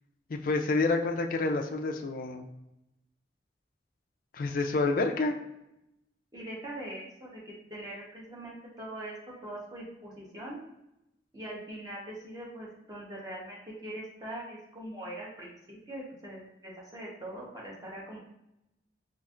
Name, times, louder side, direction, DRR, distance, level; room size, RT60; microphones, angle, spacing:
voice 1, 0.3-2.4 4.3-5.4, left 3 dB, 45° left, 4 dB, 0.4 m, -28 dB
voice 2, 6.3-9.1 9.4-10.6 11.3-18.2, right 1 dB, 20° right, -5 dB, 0.9 m, -42 dB
4.3 x 2.5 x 2.4 m, 0.87 s
head